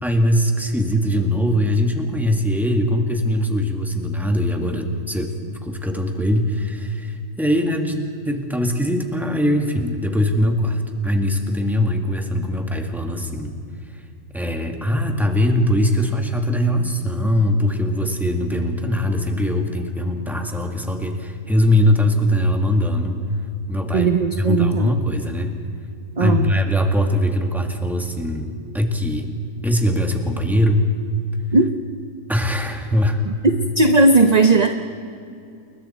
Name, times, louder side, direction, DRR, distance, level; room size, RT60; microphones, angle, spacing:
voice 1, 0.0-13.6 14.3-23.2 23.7-24.1 24.4-25.6 26.2-29.3 29.6-30.9 32.3-33.2, left 1 dB, ahead, 3 dB, 1.9 m, -21 dB
voice 2, 23.9-24.9 26.2-26.5 31.5-31.7 33.3-33.4 33.8-34.7, right 3 dB, 35° right, 6 dB, 0.9 m, -16 dB
29.0 x 21.5 x 4.4 m, 2.5 s
omnidirectional pair, 1.5 m